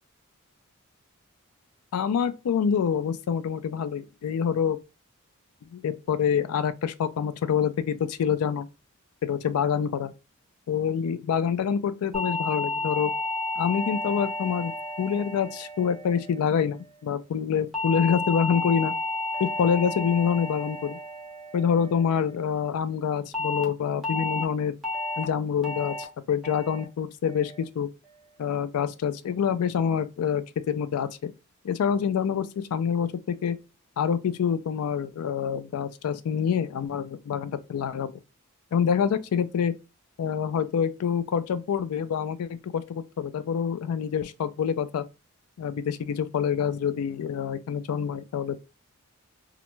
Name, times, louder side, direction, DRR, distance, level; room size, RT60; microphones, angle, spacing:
voice 1, 1.9-4.8 5.7-8.7 9.2-10.1 10.7-13.1 13.6-14.7 15.0-18.9 19.4-21.0 21.5-24.7 25.2-27.9 28.4-31.3 31.6-33.6 34.0-38.2 38.7-39.7 40.2-45.1 45.6-48.6, left 7 dB, 80° left, 0.3 m, -26 dB
sound 1, 12.1-16.6 17.7-22.2 23.3-23.6 24.0-24.4 24.8-25.2 25.6-26.0 26.4-26.8 27.2-27.6, left 2 dB, ahead, 0.7 m, -32 dB
2.4 x 2.1 x 3.0 m
head